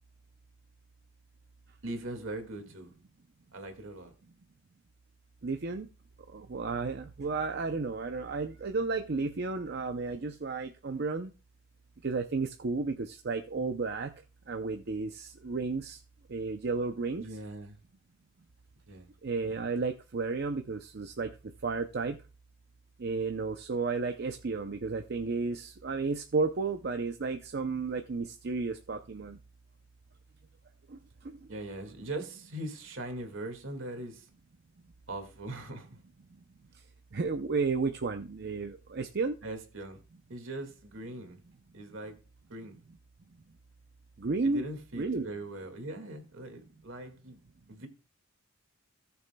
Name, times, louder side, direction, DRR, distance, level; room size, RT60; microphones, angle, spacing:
voice 1, 1.8-2.9 3.5-4.1 17.2-17.8 18.9-19.1 31.5-34.3 35.1-35.9 39.4-40.0 40.3-41.4 41.7-42.2 42.5-42.8 44.4-47.4 47.7-47.9, right 1 dB, 70° right, 2.0 m, -40 dB
voice 2, 5.4-5.9 6.3-11.3 12.0-14.1 14.5-16.0 16.3-17.3 19.2-21.4 21.6-22.2 23.0-29.4 30.9-31.5 36.7-36.8 37.1-39.4 44.2-44.6 45.0-45.3, right 4 dB, 50° right, 0.6 m, -33 dB
17.5 x 6.9 x 2.2 m
head